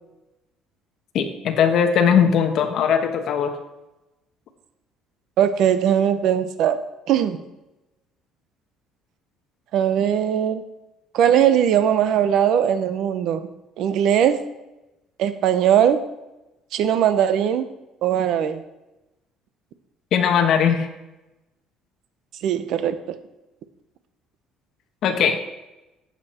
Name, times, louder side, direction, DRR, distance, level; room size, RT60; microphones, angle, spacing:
voice 1, 1.1-3.6 20.1-20.9 25.0-25.4, left 7 dB, 50° left, 5 dB, 1.3 m, -19 dB
voice 2, 5.4-6.8 7.1-7.4 9.7-10.6 11.1-13.5 13.8-14.4 15.2-16.0 16.7-17.7 18.0-18.6 22.4-23.0, right 9 dB, 60° right, 11 dB, 0.9 m, -19 dB
12.0 x 8.6 x 4.4 m, 0.98 s
cardioid pair, 165°, 0 cm